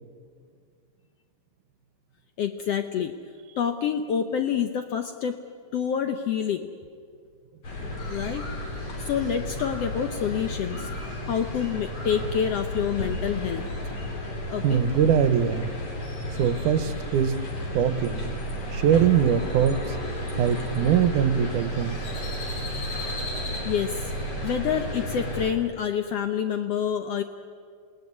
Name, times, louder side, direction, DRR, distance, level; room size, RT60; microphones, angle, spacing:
voice 1, 2.4-3.2 3.6-5.4 5.7-6.7 8.1-8.5 9.0-10.9 11.3-13.6 14.5-14.8 23.6-24.1 24.4-27.2, left 8 dB, 75° left, 7 dB, 1.4 m, -27 dB
sound 1, 7.6-25.5, equal, 45° left, 4.1 m, -33 dB
Crow, 8.0-24.6, left 2 dB, 60° left, 6.1 m, -44 dB
voice 2, 14.6-15.7 16.4-17.5 17.7-18.3 18.7-20.0 20.4-22.0, right 8 dB, 70° right, 12 dB, 2.3 m, -22 dB
28.0 x 19.0 x 9.6 m, 2.1 s
omnidirectional pair, 3.9 m